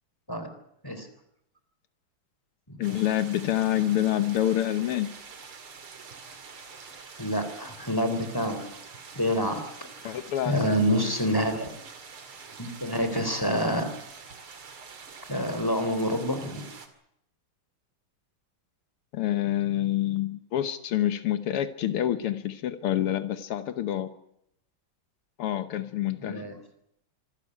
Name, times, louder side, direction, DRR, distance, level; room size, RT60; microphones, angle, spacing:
voice 1, 2.8-5.1 10.0-11.1 19.1-24.1 25.4-26.4, left 12 dB, 85° left, 11 dB, 2.0 m, -27 dB
sound 1, 2.8-16.9, right 5 dB, 70° right, 3.2 m, -46 dB
voice 2, 7.2-8.7 9.2-9.6 10.0-10.1 10.5-11.7 12.6-13.9 15.3-16.6 26.2-26.6, equal, 10° left, 8 dB, 3.5 m, -27 dB
25.5 x 13.5 x 9.9 m, 0.75 s
omnidirectional pair, 2.4 m